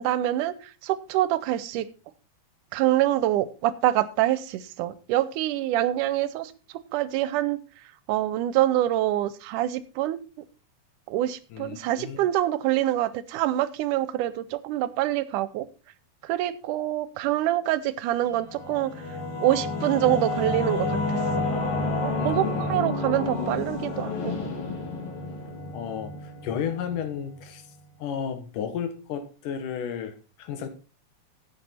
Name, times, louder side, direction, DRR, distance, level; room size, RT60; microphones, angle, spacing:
voice 1, 0.0-1.9 2.7-6.5 6.9-7.6 8.1-10.2 11.1-15.7 16.2-18.9 19.4-21.2 22.0-24.3, right 14 dB, 85° right, 16 dB, 2.2 m, -25 dB
voice 2, 11.5-12.2 22.2-22.8 25.7-27.6 28.0-30.7, left 8 dB, 90° left, 9 dB, 2.9 m, -33 dB
Singing / Musical instrument, 18.3-27.5, left 2 dB, 70° left, 3.3 m, -30 dB
11.5 x 8.3 x 4.2 m, 0.34 s
omnidirectional pair, 3.6 m